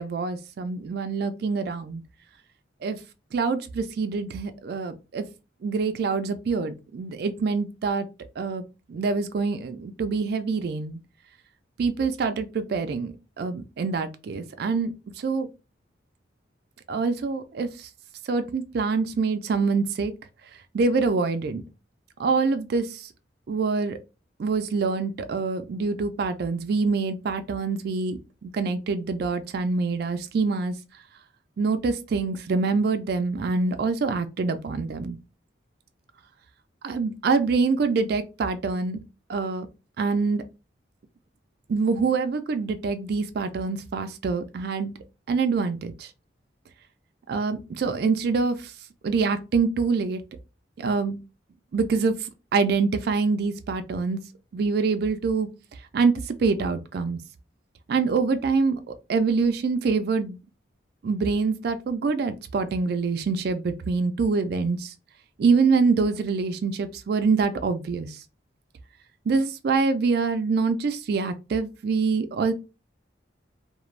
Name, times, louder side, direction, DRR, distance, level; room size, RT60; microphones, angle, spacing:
voice 1, 0.0-2.0 2.8-3.0 3.3-5.2 5.6-8.1 8.4-8.6 8.9-11.0 11.8-15.5 16.9-17.9 18.3-20.1 20.7-21.6 22.2-23.0 23.5-24.0 24.4-30.8 31.6-35.2 36.8-39.0 39.3-39.7 40.0-40.4 41.7-45.0 45.3-46.1 47.3-48.6 49.0-50.2 50.8-51.2 51.7-52.1 52.5-54.2 54.5-55.5 55.9-57.2 57.9-60.4 61.0-64.9 65.4-68.1 69.3-72.5, right 4 dB, 55° right, 0.3 m, -25 dB
2.4 x 2.1 x 3.1 m
head